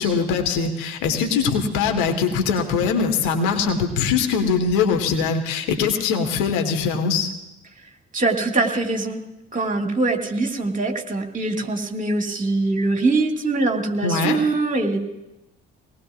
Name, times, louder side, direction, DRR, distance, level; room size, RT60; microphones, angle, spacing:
voice 1, 0.0-7.3 14.0-14.4, left 5 dB, 65° left, 5 dB, 1.5 m, -22 dB
voice 2, 8.1-9.2 9.5-15.0, right 3 dB, 25° right, 3 dB, 2.1 m, -23 dB
23.0 x 19.0 x 2.5 m, 0.93 s
figure-of-eight pair, 45°, 34 cm